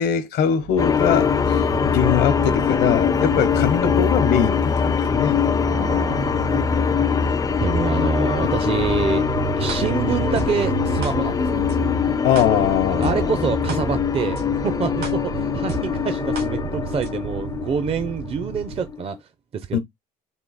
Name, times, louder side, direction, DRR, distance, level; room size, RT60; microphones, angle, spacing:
voice 1, 0.0-5.4 12.2-13.5 19.7-19.8, left 8 dB, 80° left, 0.8 m, -22 dB
sound 1, 0.6-18.9, right 8 dB, 90° right, 0.8 m, -33 dB
sound 2, 0.8-19.1, left 6 dB, 20° left, 0.3 m, -23 dB
voice 2, 5.6-7.3 7.6-11.6 12.9-19.8, right 6 dB, 35° right, 0.5 m, -27 dB
sound 3, 9.7-9.8 10.3-10.5 11.0-11.1 11.7-11.8 12.3-12.4 13.0-13.1 13.7-13.8 14.3-14.4 15.0-15.1 15.7-15.8 16.3-16.4 17.0-17.1, right 4 dB, 70° right, 1.6 m, -30 dB
3.6 x 2.8 x 4.0 m
cardioid pair, 110°, 17 cm